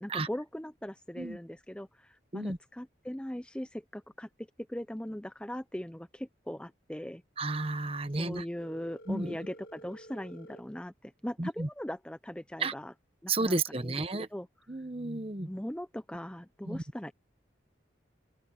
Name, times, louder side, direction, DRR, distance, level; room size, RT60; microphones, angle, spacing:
voice 1, 0.0-7.2 8.2-12.9 13.2-13.5 13.8-13.9 14.3-14.5 15.5-17.1, equal, 5° left, 0.5 m, -40 dB
voice 2, 7.4-8.4 9.1-9.4 11.4-11.7 12.6-12.7 13.3-14.3 14.7-15.5 16.6-16.8, right 3 dB, 30° right, 1.1 m, -32 dB
Telephone, 8.6-10.6, equal, 55° left, 1.5 m, -51 dB
open air
head